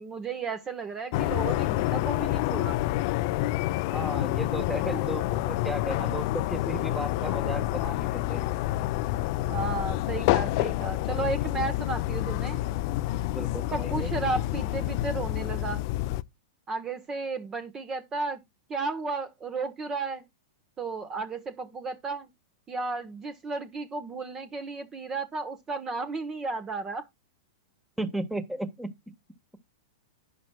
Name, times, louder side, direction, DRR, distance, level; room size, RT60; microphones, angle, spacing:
voice 1, 0.0-2.8 4.8-5.0 9.5-12.6 13.7-15.8 16.7-18.4 18.7-20.2 20.8-22.3 22.7-27.0, right 4 dB, 20° right, 1.2 m, -33 dB
sound 1, 1.1-16.2, left 16 dB, 50° left, 0.6 m, -28 dB
voice 2, 3.9-8.5 13.3-14.1 28.0-28.9, right 1 dB, 5° right, 1.3 m, -35 dB
11.5 x 8.9 x 2.3 m
hypercardioid pair, 105°, 2 cm